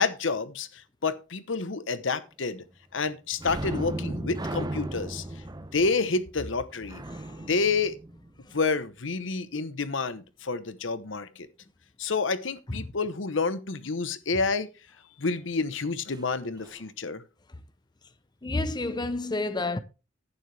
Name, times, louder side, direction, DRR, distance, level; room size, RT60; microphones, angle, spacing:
voice 1, 0.0-2.6 2.9-5.2 5.7-7.0 7.4-8.0 8.5-11.5 12.0-14.7 15.2-17.2, left 4 dB, 75° left, 1.0 m, -29 dB
sound 1, 3.4-8.8 16.1-16.3 16.6-16.8, right 1 dB, 20° right, 0.8 m, -36 dB
voice 2, 7.1-7.5 8.5-8.6 12.7-12.9 18.4-19.8, left 2 dB, 25° left, 0.7 m, -30 dB
11.0 x 9.5 x 3.4 m
head